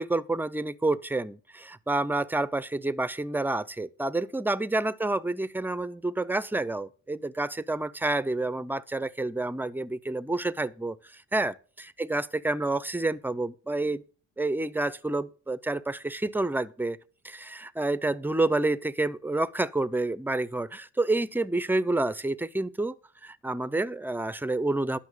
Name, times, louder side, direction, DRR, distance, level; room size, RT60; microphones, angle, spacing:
voice 1, 0.0-14.0 14.4-17.0 17.2-22.9 23.2-25.0, right 2 dB, 5° right, 0.6 m, -29 dB
11.0 x 5.9 x 6.3 m
cardioid pair, 90°, 30 cm